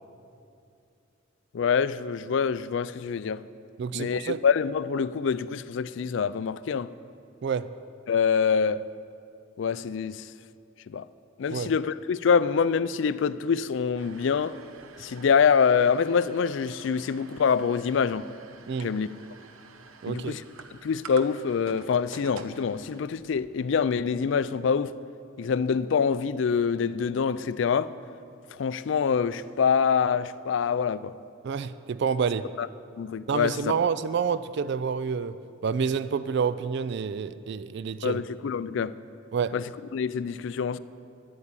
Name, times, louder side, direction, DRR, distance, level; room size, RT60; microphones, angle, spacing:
voice 1, 1.5-3.4 3.9-6.9 8.1-8.8 9.6-10.2 10.9-11.1 11.4-14.6 15.0-18.3 18.8-19.1 20.1-20.4 20.8-25.0 25.4-27.9 28.6-31.1 32.6-32.7 33.0-33.7 38.0-38.9 39.5-40.8, left 6 dB, 60° left, 0.3 m, -25 dB
voice 2, 3.8-4.4 7.4-7.7 11.5-11.7 18.7-18.9 20.0-20.4 31.4-32.5 33.3-35.4 35.6-38.2 39.3-39.6, right 6 dB, 55° right, 0.3 m, -28 dB
sound 1, 14.0-24.3, right 4 dB, 85° right, 0.9 m, -49 dB
11.0 x 8.2 x 8.8 m
head